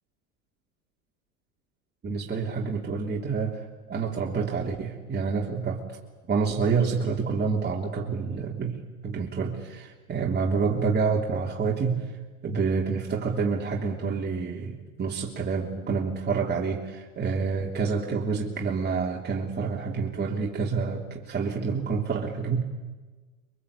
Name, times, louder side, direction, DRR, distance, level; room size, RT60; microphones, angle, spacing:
voice 1, 2.0-6.0 6.3-12.2 12.4-22.6, right 5 dB, 25° right, -1 dB, 3.3 m, -28 dB
26.0 x 23.5 x 8.5 m, 1.3 s
hypercardioid pair, 85°, 41 cm